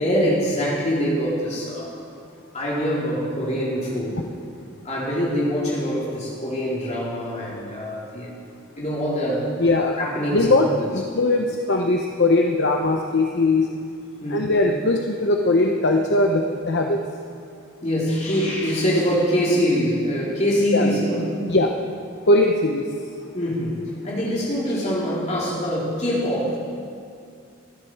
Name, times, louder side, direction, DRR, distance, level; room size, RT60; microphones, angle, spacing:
voice 1, 0.0-1.9 2.5-4.2 4.8-8.3 8.8-9.5 10.0-10.9 14.2-14.5 17.8-21.4 23.3-26.6, equal, 35° left, -5 dB, 3.8 m, -24 dB
voice 2, 9.6-10.1 10.3-13.7 14.3-17.0 20.7-20.9 21.5-21.7 22.3-22.9, left 2 dB, 55° left, 2 dB, 0.9 m, -20 dB
19.0 x 13.0 x 4.8 m, 2.4 s
head